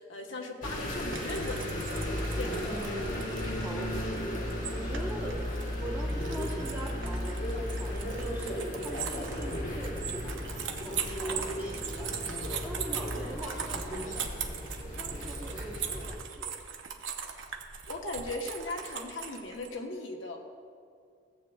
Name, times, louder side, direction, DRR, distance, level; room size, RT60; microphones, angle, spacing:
voice 1, 0.0-3.0 17.9-20.4, left 2 dB, 75° left, 1 dB, 1.1 m, -38 dB
sound 1, 0.6-16.1, equal, 45° left, 1.3 m, -35 dB
sound 2, 1.0-19.7, right 7 dB, 75° right, 0.8 m, -40 dB
voice 2, 2.6-5.4 5.8-10.3 10.8-12.2 12.6-16.5, right 1 dB, 10° right, -5 dB, 1.1 m, -42 dB
16.5 x 8.0 x 2.4 m, 2.3 s
head